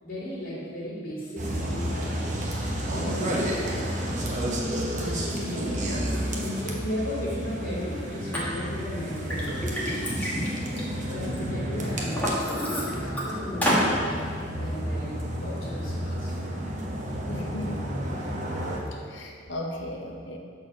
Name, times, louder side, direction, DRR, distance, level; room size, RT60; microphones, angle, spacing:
voice 1, 0.0-2.6 2.9-4.2 5.0-9.8 11.0-14.0 14.6-16.6, equal, 55° left, -7 dB, 1.8 m, -36 dB
sound 1, 1.4-18.8, equal, 45° right, 1.0 m, -31 dB
Liquid, 8.3-8.4 9.0-11.4 11.8-13.2 13.6-13.9, equal, 10° left, 1.4 m, -28 dB
voice 2, 17.3-17.9 19.1-20.4, left 1 dB, 85° left, 1 dB, 1.0 m, -36 dB
6.6 x 4.1 x 6.3 m, 2.1 s
head